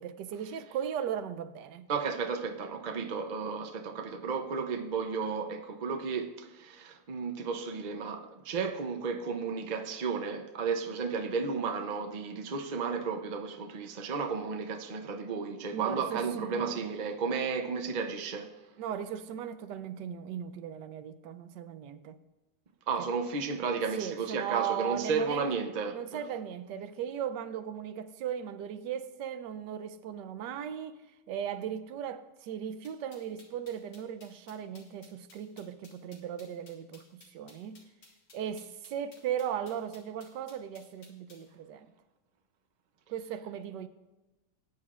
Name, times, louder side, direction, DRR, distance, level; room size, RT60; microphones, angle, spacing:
voice 1, 0.0-1.9 15.7-17.0 18.8-22.2 23.0-23.1 24.0-25.5 25.9-31.0 31.3-37.8 38.3-41.9 43.1-43.9, right 9 dB, 80° right, 1.3 m, -37 dB
voice 2, 1.9-18.5 22.9-26.2, right 5 dB, 60° right, 0.4 m, -33 dB
sound 1, 32.8-41.5, left 3 dB, 85° left, 2.5 m, -57 dB
19.0 x 9.7 x 2.5 m
omnidirectional pair, 1.8 m